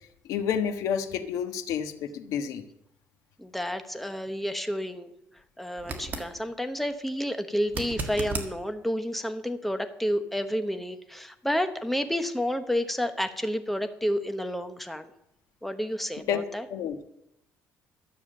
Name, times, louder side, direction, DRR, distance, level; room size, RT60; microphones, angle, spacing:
voice 1, 0.3-2.6 16.3-16.4 16.7-17.0, left 8 dB, 80° left, 8 dB, 1.3 m, -29 dB
voice 2, 3.4-5.1 5.6-15.1 15.6-16.7, equal, 5° left, 8 dB, 0.9 m, -30 dB
sound 1, 5.8-6.3 7.7-8.5 11.5-11.6, right 3 dB, 30° right, 1.7 m, -34 dB
13.0 x 7.1 x 7.7 m, 0.81 s
cardioid pair, 155°, 6 cm